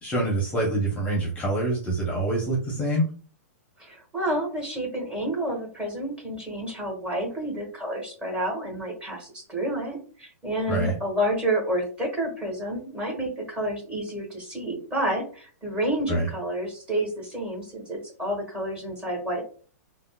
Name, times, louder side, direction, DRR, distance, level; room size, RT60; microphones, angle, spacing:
voice 1, 0.0-3.1 10.7-10.9 16.1-16.3, right 1 dB, 15° left, -2 dB, 0.7 m, -25 dB
voice 2, 3.8-19.4, right 1 dB, 15° right, -1 dB, 1.0 m, -29 dB
3.4 x 2.0 x 2.2 m, 0.41 s
hypercardioid pair, 135°, 9 cm